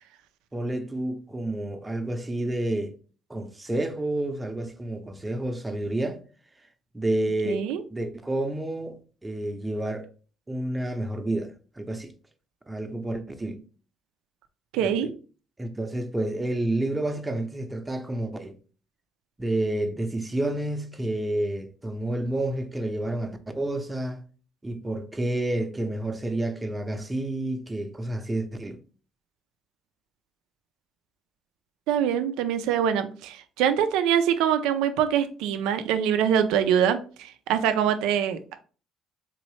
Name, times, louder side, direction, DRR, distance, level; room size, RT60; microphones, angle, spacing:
voice 1, 0.5-3.0 3.3-6.2 6.9-10.1 10.5-12.1 12.7-13.6 14.8-15.1 15.6-18.6 19.4-24.2 24.6-28.8, right 1 dB, 15° right, 0.7 m, -29 dB
voice 2, 7.5-7.8 14.7-15.1 31.9-38.5, right 9 dB, 75° right, 0.4 m, -24 dB
3.7 x 3.0 x 3.1 m
hypercardioid pair, 60°, 0 cm